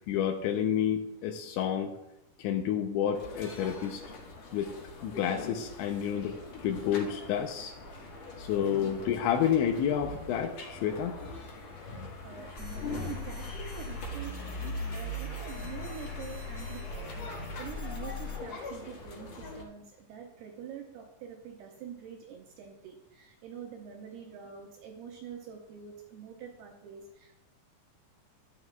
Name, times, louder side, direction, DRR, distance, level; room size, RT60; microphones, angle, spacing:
voice 1, 0.1-1.9 2.4-4.0 4.5-4.7 5.0-7.7 8.4-11.4 12.8-13.0, left 9 dB, 85° left, 4 dB, 3.0 m, -30 dB
sound 1, 3.1-19.6, left 2 dB, 55° left, 3.0 m, -44 dB
voice 2, 8.4-8.9 11.8-27.4, right 8 dB, 80° right, 2 dB, 2.5 m, -46 dB
sound 2, 12.6-18.4, left 1 dB, 20° left, 1.6 m, -39 dB
13.0 x 11.0 x 2.3 m, 0.87 s
omnidirectional pair, 5.3 m